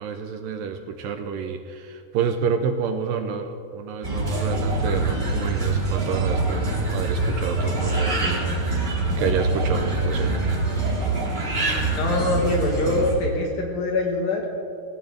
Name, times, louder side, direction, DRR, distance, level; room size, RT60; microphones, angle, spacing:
voice 1, 0.0-10.5, right 6 dB, 75° right, 6 dB, 2.3 m, -29 dB
sound 1, 4.0-13.1, right 2 dB, 20° right, 1.8 m, -24 dB
voice 2, 11.9-14.4, left 2 dB, 70° left, 0 dB, 3.2 m, -24 dB
21.5 x 16.5 x 3.4 m, 2.4 s
omnidirectional pair, 4.3 m